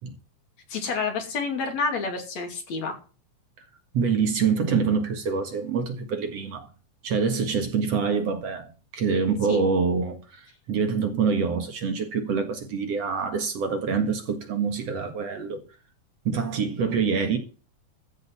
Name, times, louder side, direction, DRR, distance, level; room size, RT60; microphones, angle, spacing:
voice 1, 0.7-3.0 9.5-9.6, left 4 dB, 60° left, 3.6 m, -29 dB
voice 2, 3.9-6.7 7.0-15.6 16.3-17.4, right 5 dB, 55° right, 2.6 m, -26 dB
14.5 x 5.2 x 8.2 m
omnidirectional pair, 3.6 m